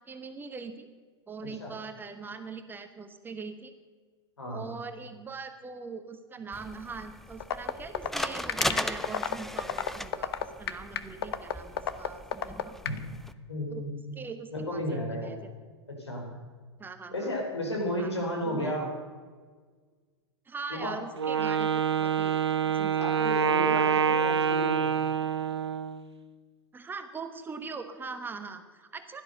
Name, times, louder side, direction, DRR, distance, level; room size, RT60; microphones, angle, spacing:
voice 1, 0.1-0.9 1.3-3.7 4.5-12.8 13.7-13.8 14.1-15.5 16.8-17.3 18.0-18.1 18.4-18.8 20.5-22.4 22.7-23.2 26.7-29.2, right 4 dB, 15° right, 7 dB, 1.2 m, -41 dB
voice 2, 4.4-4.7 12.8-13.0 13.5-14.1 14.5-15.3 15.9-16.3 17.1-18.9 20.7-21.0 23.0-24.9, equal, 80° left, 0 dB, 4.9 m, -33 dB
sound 1, 6.5-13.3, left 1 dB, ahead, 0.6 m, -37 dB
sound 2, 7.4-13.0, left 9 dB, 60° left, 1.0 m, -30 dB
Wind instrument woodwind instrument, 21.2-26.0, right 7 dB, 75° right, 0.9 m, -26 dB
16.0 x 12.0 x 6.7 m, 1.5 s
figure-of-eight pair, 95°, 14 cm